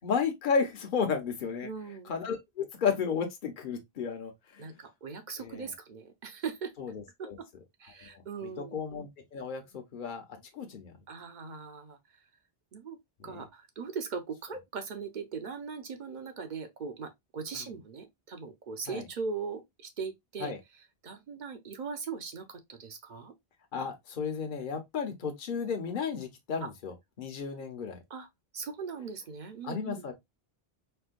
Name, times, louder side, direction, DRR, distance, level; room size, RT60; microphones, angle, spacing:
voice 1, 0.0-1.7 2.0-4.7 5.4-5.7 6.8-7.4 8.0-10.2 10.5-11.0 13.2-13.4 17.6-17.7 18.9-19.0 20.4-20.6 23.7-28.0 29.6-30.1, left 6 dB, 55° left, 0.9 m, -33 dB
voice 2, 1.6-2.1 4.6-6.7 7.2-7.5 7.8-8.8 11.1-12.0 12.7-13.0 13.2-23.3 26.6-26.7 28.1-28.3 28.5-30.1, right 5 dB, 55° right, 0.7 m, -40 dB
4.4 x 2.2 x 2.4 m
omnidirectional pair, 1.0 m